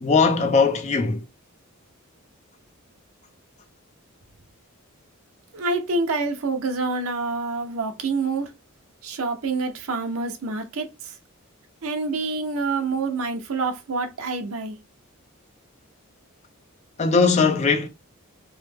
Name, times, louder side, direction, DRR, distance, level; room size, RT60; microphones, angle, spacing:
voice 1, 0.0-1.2 17.0-17.9, left 4 dB, 30° left, 0.4 m, -19 dB
voice 2, 5.5-8.5 9.0-11.1 11.8-14.8, right 3 dB, 75° right, 0.6 m, -27 dB
3.1 x 2.1 x 3.3 m
head